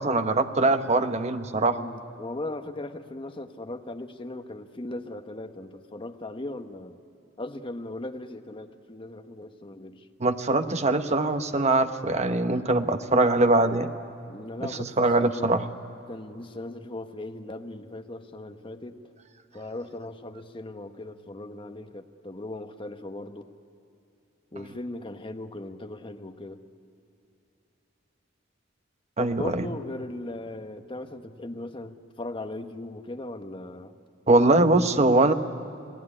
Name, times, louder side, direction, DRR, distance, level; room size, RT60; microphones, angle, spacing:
voice 1, 0.0-1.8 10.2-13.9 14.6-15.6 29.2-29.7 34.3-35.3, right 2 dB, 35° right, 8 dB, 1.0 m, -22 dB
voice 2, 1.8-7.0 7.4-10.0 14.3-15.6 16.1-19.0 19.5-23.5 24.5-26.6 29.2-33.9, left 2 dB, 30° left, 7 dB, 1.1 m, -38 dB
28.5 x 18.5 x 10.0 m, 2.8 s
head